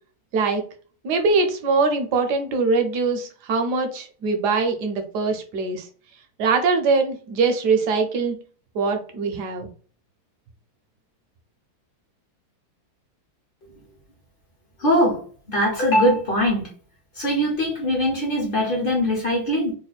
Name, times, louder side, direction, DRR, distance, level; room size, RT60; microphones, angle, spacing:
voice 1, 1.0-5.9 6.4-8.4 8.7-9.7, right 4 dB, 70° right, 5 dB, 1.0 m, -22 dB
voice 2, 14.8-15.2 15.5-16.7 17.2-19.7, equal, 50° left, -1 dB, 0.6 m, -21 dB
3.5 x 2.2 x 4.0 m, 0.41 s
omnidirectional pair, 2.3 m